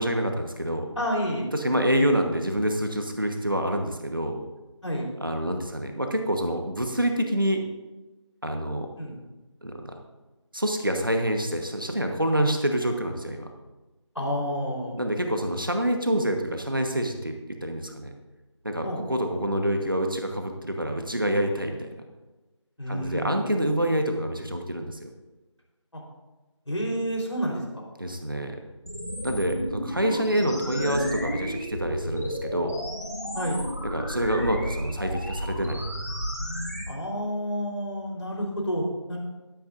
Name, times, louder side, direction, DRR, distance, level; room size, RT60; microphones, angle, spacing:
voice 1, 0.0-0.9 1.5-4.4 5.2-7.6 8.4-8.9 9.6-10.0 10.5-13.5 15.0-17.4 17.6-18.1 18.6-21.9 22.9-25.1 28.0-28.6 29.2-32.8 33.8-35.8, right 1 dB, 45° right, 4 dB, 1.2 m, -27 dB
voice 2, 1.0-1.4 4.8-5.1 9.0-9.1 14.2-15.0 18.8-19.0 22.8-23.4 25.9-26.0 26.7-27.8 33.3-33.6 36.9-39.2, equal, 70° left, -1 dB, 3.9 m, -29 dB
sound 1, 28.9-36.8, equal, 30° left, 1.8 m, -32 dB
13.0 x 11.5 x 2.6 m, 1.1 s
figure-of-eight pair, 180°, 16 cm